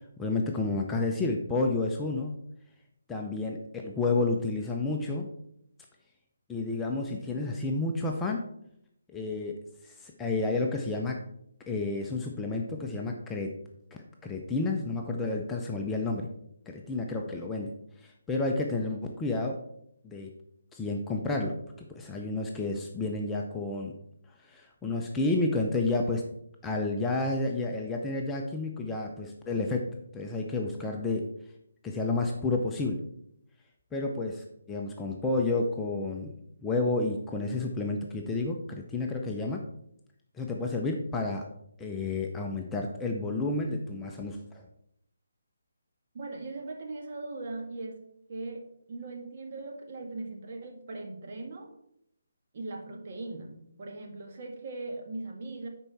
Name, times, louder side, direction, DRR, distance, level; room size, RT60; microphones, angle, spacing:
voice 1, 0.2-2.4 3.1-5.3 6.5-8.4 9.1-11.2 11.7-13.6 14.2-16.3 16.7-17.7 18.0-19.6 20.0-20.3 20.7-23.9 24.5-26.2 26.6-31.3 31.8-33.0 33.9-36.4 36.6-39.6 40.4-41.4 41.8-44.6, left 3 dB, 10° left, 1 dB, 0.6 m, -30 dB
voice 2, 46.1-48.0 48.3-51.7 52.5-55.7, right 2 dB, 45° right, 2 dB, 1.7 m, -39 dB
9.9 x 4.6 x 4.1 m, 0.74 s
figure-of-eight pair, 150°, 0 cm